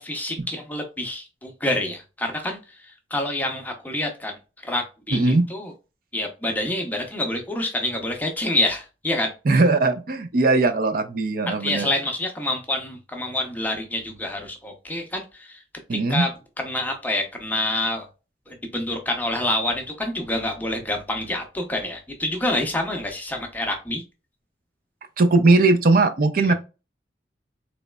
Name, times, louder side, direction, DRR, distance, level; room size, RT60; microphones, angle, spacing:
voice 1, 0.0-4.3 4.6-5.7 6.1-9.3 11.5-15.6 15.9-16.3 16.6-18.1 18.5-24.0, left 1 dB, 10° left, 0.6 m, -27 dB
voice 2, 5.1-5.4 9.5-11.9 15.9-16.2 25.2-26.5, right 3 dB, 55° right, 0.5 m, -19 dB
4.0 x 3.0 x 2.2 m
head